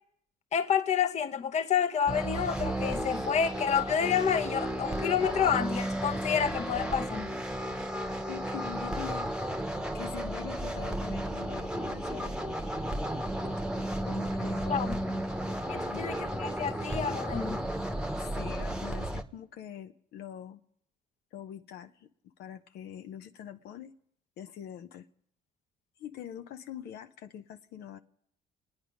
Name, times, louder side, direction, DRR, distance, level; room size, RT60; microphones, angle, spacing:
voice 1, 0.5-7.3 14.6-15.0 15.7-17.6, left 8 dB, 40° left, 0.9 m, -29 dB
sound 1, 2.1-19.2, right 1 dB, 5° right, 1.0 m, -33 dB
voice 2, 8.3-9.3 9.9-12.7 14.0-14.7 15.9-16.1 18.2-20.6 21.3-22.1 22.4-23.9 24.4-25.1 26.0-28.0, left 10 dB, 70° left, 0.7 m, -44 dB
29.0 x 9.7 x 5.1 m
cardioid pair, 110°, 17 cm